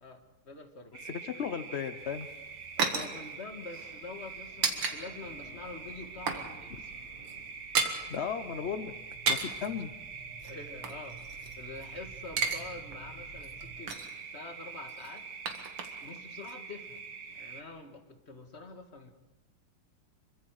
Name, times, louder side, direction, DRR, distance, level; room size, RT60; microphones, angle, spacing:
voice 1, 0.0-0.9 2.8-6.9 9.5-9.7 10.4-14.0 14.3-15.2 16.0-17.0 17.3-19.1, left 3 dB, 30° left, 5 dB, 1.9 m, -46 dB
sound 1, 0.9-17.6, right 5 dB, 55° right, 2.0 m, -45 dB
voice 2, 1.0-2.3 8.1-8.9 9.3-9.9, left 7 dB, 70° left, 11 dB, 0.6 m, -35 dB
sound 2, 2.0-5.0 5.3-5.4 5.8-6.5 6.7-6.9 7.2-8.0 9.0-9.7 10.4-11.9 12.1-12.6 12.9-13.0 13.4-14.2 14.9-16.2 16.4-16.5, right 5 dB, 80° right, 2.7 m, -33 dB
sound 3, 2.8-13.8, right 1 dB, 25° right, 6.1 m, -54 dB
26.5 x 23.5 x 4.8 m, 1.1 s
omnidirectional pair, 2.4 m